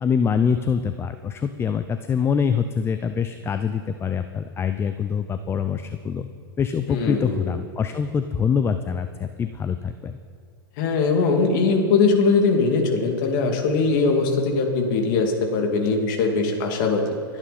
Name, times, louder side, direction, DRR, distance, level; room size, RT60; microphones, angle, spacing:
voice 1, 0.0-6.3 6.6-10.2, left 6 dB, 20° left, 10 dB, 0.5 m, -24 dB
voice 2, 6.9-7.5 10.8-17.0, left 4 dB, 55° left, 3 dB, 2.4 m, -21 dB
24.0 x 8.9 x 4.2 m, 2.2 s
hypercardioid pair, 105°, 13 cm